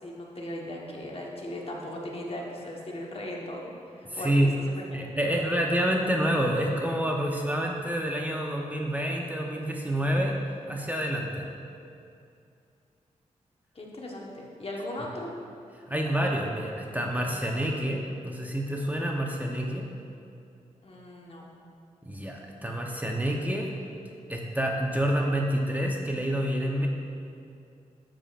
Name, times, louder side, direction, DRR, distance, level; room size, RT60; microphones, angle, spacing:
voice 1, 0.0-4.3 4.7-5.0 5.3-5.6 13.7-15.3 20.8-21.5, left 1 dB, 45° left, -2 dB, 1.4 m, -38 dB
voice 2, 4.0-4.5 4.9-10.4 10.7-11.4 15.9-19.8 22.0-23.7 24.3-26.9, equal, 10° right, 0 dB, 0.9 m, -28 dB
9.6 x 7.6 x 2.5 m, 2.5 s
cardioid pair, 50°, 14 cm